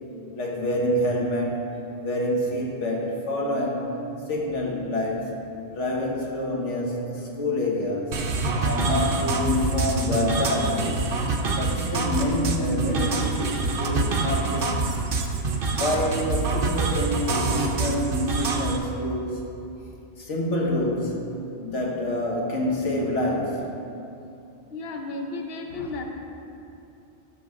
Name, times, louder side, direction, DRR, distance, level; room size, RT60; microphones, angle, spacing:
voice 1, 0.3-1.6 2.0-3.9 4.3-5.5 5.7-8.2 8.6-11.0 11.4-14.9 15.7-19.4 20.2-21.2 21.6-23.6, left 1 dB, 90° left, -2 dB, 1.6 m, -27 dB
sound 1, 8.1-18.8, right 3 dB, 55° right, 0.9 m, -26 dB
voice 2, 24.7-26.1, left 2 dB, 60° left, 3 dB, 1.0 m, -33 dB
12.5 x 6.2 x 3.7 m, 2.8 s
omnidirectional pair, 1.2 m